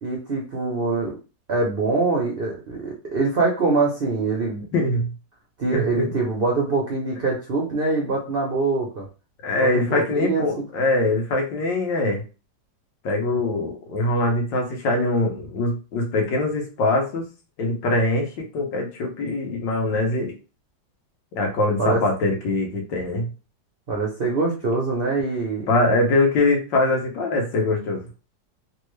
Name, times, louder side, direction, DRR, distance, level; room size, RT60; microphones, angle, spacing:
voice 1, 0.0-1.2 1.5-4.6 5.6-9.1 9.6-10.6 21.8-22.0 23.9-25.7, right 3 dB, 70° right, -2 dB, 0.5 m, -24 dB
voice 2, 4.7-5.1 5.7-6.1 9.4-12.2 13.0-17.3 17.6-20.3 21.3-23.3 25.7-28.0, left 2 dB, 80° left, 1 dB, 1.6 m, -23 dB
3.5 x 2.3 x 3.1 m, 0.32 s
omnidirectional pair, 2.0 m